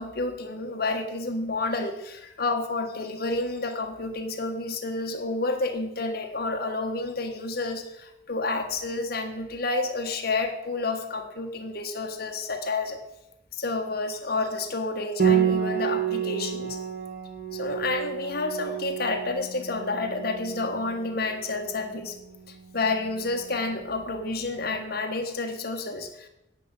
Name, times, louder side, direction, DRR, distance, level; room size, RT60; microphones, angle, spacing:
voice 1, 0.0-13.0 13.6-16.8 17.5-22.2 22.7-26.3, left 3 dB, 55° left, 4 dB, 1.5 m, -30 dB
Piano, 15.2-24.5, right 8 dB, 50° right, 1.9 m, -30 dB
10.5 x 6.9 x 8.1 m, 0.86 s
head